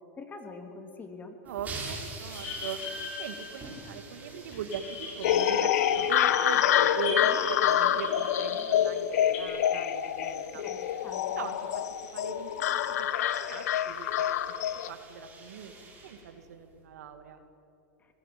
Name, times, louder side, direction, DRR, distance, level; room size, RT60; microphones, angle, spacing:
voice 1, 0.2-1.4 7.1-7.9 10.5-11.4, left 3 dB, 20° left, 5 dB, 2.9 m, -45 dB
sound 1, 1.4-16.8, right 3 dB, 20° right, 7.8 m, -47 dB
voice 2, 1.4-2.8 3.2-10.6 11.3-14.4 14.9-17.4, right 6 dB, 85° right, 8 dB, 2.3 m, -40 dB
sound 2, 2.3-4.2 4.5-9.4, left 4 dB, 60° left, 7.5 m, -40 dB
sound 3, 5.2-14.9, left 10 dB, 85° left, 1.2 m, -27 dB
23.5 x 20.0 x 9.4 m, 2.7 s
supercardioid pair, 125°, 8 cm